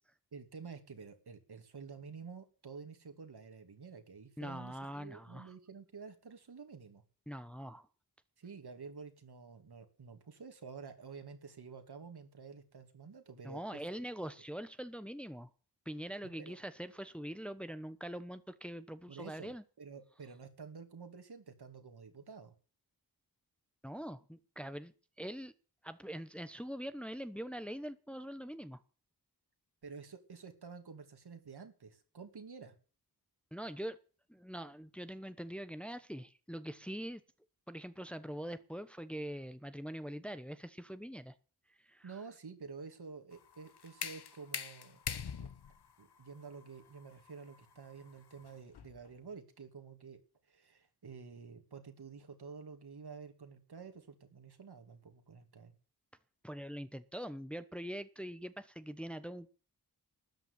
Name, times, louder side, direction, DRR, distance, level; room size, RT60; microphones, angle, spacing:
voice 1, 0.3-7.0 8.4-14.0 16.4-16.6 19.1-22.5 29.8-32.8 42.0-45.0 45.4-45.5 46.0-55.7, right 5 dB, 70° right, 7 dB, 2.7 m, -50 dB
voice 2, 4.4-5.5 7.3-7.9 13.4-15.5 15.8-19.6 23.8-24.9 25.2-25.5 25.8-28.8 33.5-34.0 34.3-37.2 37.7-41.3 41.8-42.1 56.4-59.5, equal, 5° left, 12 dB, 1.0 m, -43 dB
sound 1, 43.3-49.1, left 7 dB, 75° left, 1.2 m, -44 dB
13.0 x 9.1 x 8.2 m, 0.38 s
wide cardioid pair, 65°, 40 cm